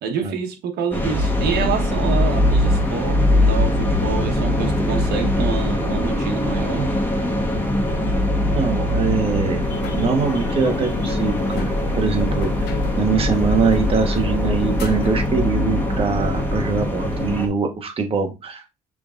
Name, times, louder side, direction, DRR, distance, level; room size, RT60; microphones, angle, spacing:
voice 1, 0.0-6.9, right 6 dB, 75° right, 1.1 m, -27 dB
sound 1, 0.9-17.5, left 1 dB, 10° left, 1.2 m, -21 dB
voice 2, 8.5-9.7 9.9-18.7, right 4 dB, 35° right, 1.2 m, -23 dB
sound 2, 9.6-15.3, left 9 dB, 80° left, 0.7 m, -33 dB
6.0 x 3.6 x 2.5 m
cardioid pair, 110°, 17 cm